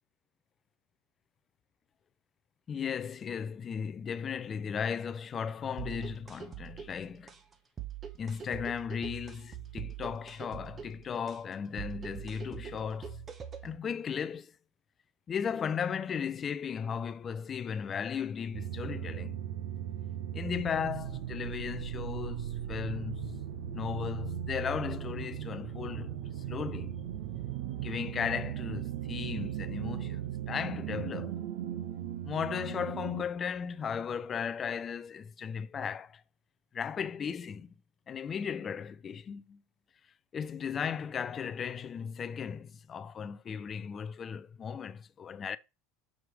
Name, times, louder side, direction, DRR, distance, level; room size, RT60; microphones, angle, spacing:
voice 1, 2.7-7.3 8.2-13.2 13.6-14.5 15.3-19.4 20.3-23.4 23.7-26.9 27.8-31.3 32.2-36.2 36.7-37.7 38.1-39.6 40.3-45.6, left 7 dB, 25° left, 0.4 m, -36 dB
sound 1, 5.8-13.8, right 9 dB, 25° right, 0.9 m, -44 dB
sound 2, 18.5-33.2, right 10 dB, 75° right, 1.0 m, -37 dB
6.2 x 4.8 x 3.4 m
supercardioid pair, 135°, 0 cm